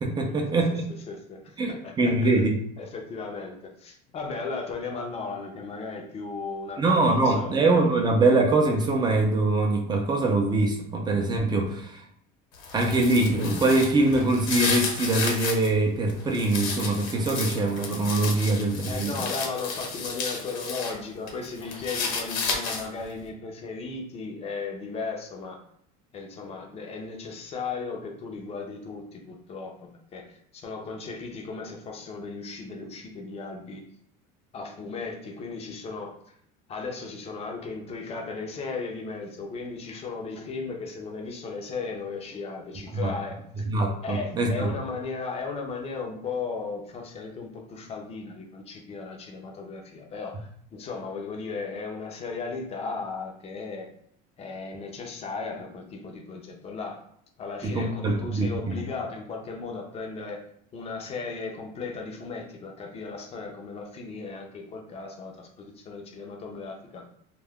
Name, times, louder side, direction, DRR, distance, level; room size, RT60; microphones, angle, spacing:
voice 1, 0.0-0.9 1.6-2.6 6.8-12.0 12.7-19.3 42.9-43.1 43.7-44.7 57.6-58.9, right 2 dB, 20° right, 2 dB, 0.5 m, -23 dB
voice 2, 1.1-2.4 2.8-7.6 18.8-25.6 26.1-33.8 34.5-36.1 36.7-43.7 44.0-53.9 54.4-57.0 57.4-60.4 60.7-67.1, left 4 dB, 30° left, 2 dB, 0.6 m, -36 dB
sound 1, 12.5-15.7 16.1-21.0 21.3-23.0, left 4 dB, 65° left, 1.1 m, -32 dB
2.3 x 2.1 x 3.5 m, 0.67 s
cardioid pair, 140°, 21 cm